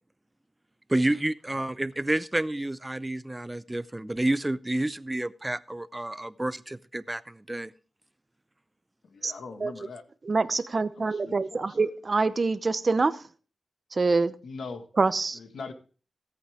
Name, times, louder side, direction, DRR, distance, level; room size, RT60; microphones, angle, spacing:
voice 1, 0.9-7.7, right 1 dB, 15° right, 16 dB, 0.5 m, -29 dB
voice 2, 9.0-10.0 11.0-11.9 14.4-14.9 15.3-15.7, left 4 dB, 80° left, 7 dB, 1.6 m, -41 dB
voice 3, 10.3-13.2 13.9-14.3 15.0-15.4, right 3 dB, 45° right, 13 dB, 0.8 m, -25 dB
17.0 x 8.5 x 3.6 m, 0.40 s
cardioid pair, 70°, 0 cm